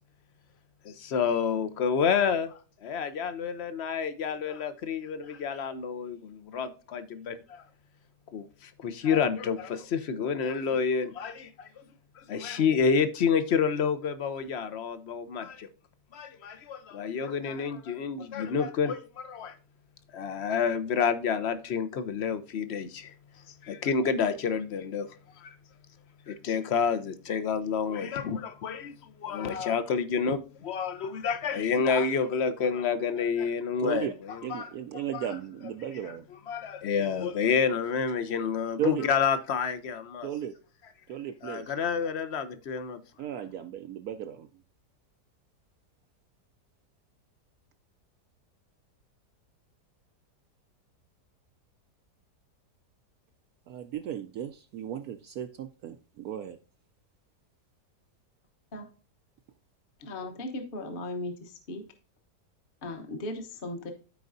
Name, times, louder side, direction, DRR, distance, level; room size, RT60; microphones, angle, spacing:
voice 1, 0.8-7.6 8.3-11.8 12.2-15.7 16.1-19.6 20.1-23.1 23.6-25.1 25.4-25.5 26.3-34.1 34.5-34.7 36.5-40.3 41.4-43.0, left 6 dB, 55° left, 0.8 m, -29 dB
voice 2, 33.8-34.1 34.4-36.3 38.8-39.1 40.2-40.6 41.1-41.7 43.2-44.5 53.7-56.6, right 10 dB, 70° right, 1.0 m, -35 dB
voice 3, 60.0-61.8 62.8-63.9, left 2 dB, 35° left, 1.1 m, -37 dB
13.5 x 4.6 x 2.6 m
omnidirectional pair, 1.8 m